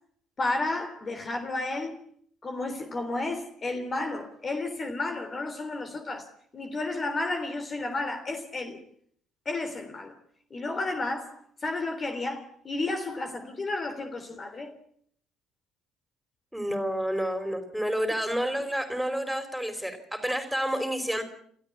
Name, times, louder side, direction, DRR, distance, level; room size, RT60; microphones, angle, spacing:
voice 1, 0.4-2.0 2.4-6.3 6.5-8.8 9.5-10.2 10.5-14.7, left 2 dB, 35° left, 3.4 m, -32 dB
voice 2, 16.5-21.2, equal, ahead, 4.7 m, -29 dB
30.0 x 13.5 x 8.5 m
hypercardioid pair, 60°, 0 cm